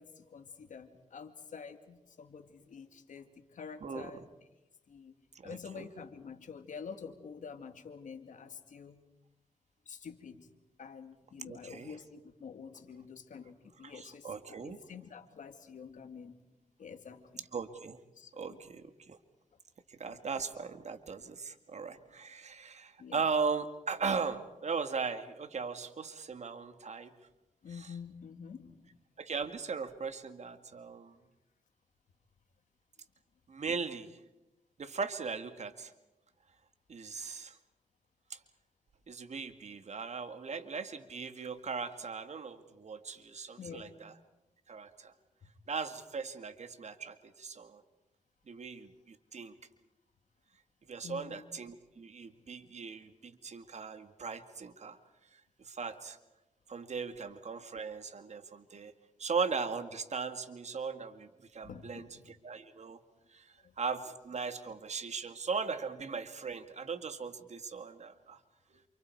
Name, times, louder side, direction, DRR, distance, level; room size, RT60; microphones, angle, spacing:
voice 1, 0.0-4.3 4.9-5.1 5.4-9.0 9.9-10.5 10.8-16.4 16.8-17.5 18.1-18.6 20.1-20.2 22.0-22.1 23.0-23.2 27.6-28.9 43.6-44.0 45.4-45.5 51.0-51.5 61.6-62.3 63.6-63.7, left 6 dB, 75° left, 7 dB, 2.4 m, -48 dB
voice 2, 5.4-5.9 11.4-11.9 13.8-14.8 17.5-18.0 18.4-19.2 19.9-27.1 27.8-27.9 29.2-31.2 33.5-34.2 34.8-35.9 36.9-37.6 38.3-38.4 39.1-44.1 44.7-45.1 45.7-47.8 48.5-49.5 50.9-55.0 55.3-56.2 56.7-58.9 59.2-63.0 63.3-68.4, right 5 dB, 60° right, 9 dB, 2.1 m, -38 dB
28.5 x 28.5 x 4.8 m, 0.99 s
cardioid pair, 65°, 13 cm